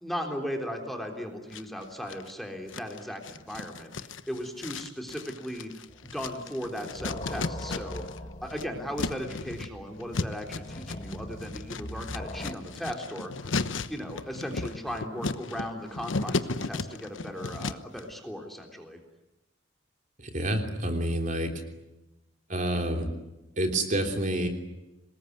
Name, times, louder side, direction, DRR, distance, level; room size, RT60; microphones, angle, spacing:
voice 1, 0.0-8.0 8.4-13.5 13.9-19.0, equal, ahead, 3 dB, 3.5 m, -37 dB
sound 1, 1.5-2.3 2.7-8.2 8.4-18.0, left 3 dB, 85° left, 1.1 m, -35 dB
sound 2, 5.9-6.3 6.7-12.6, left 1 dB, 30° left, 2.1 m, -41 dB
voice 2, 20.2-21.5 22.5-23.1 23.6-24.5, right 1 dB, 40° right, 4 dB, 3.3 m, -28 dB
26.0 x 20.5 x 9.5 m, 1.0 s
head